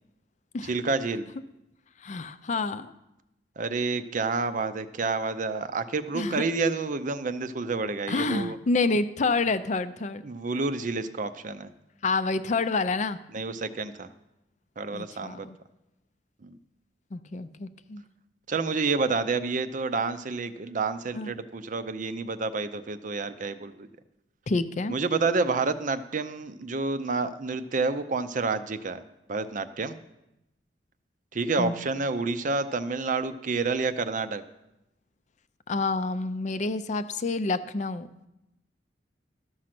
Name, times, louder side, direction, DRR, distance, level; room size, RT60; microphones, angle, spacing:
voice 1, 0.6-1.2 3.6-8.6 10.2-11.7 13.3-14.1 14.8-15.5 16.4-16.6 18.5-23.9 24.9-29.0 29.3-30.0 31.3-34.4, right 4 dB, 45° right, 11 dB, 0.5 m, -29 dB
voice 2, 2.0-2.9 6.1-6.4 8.1-10.3 12.0-13.2 14.9-15.6 17.1-18.0 21.1-21.3 24.5-24.9 31.6-31.8 35.7-38.1, left 3 dB, 40° left, 12 dB, 0.5 m, -28 dB
13.0 x 6.3 x 5.9 m, 0.90 s
head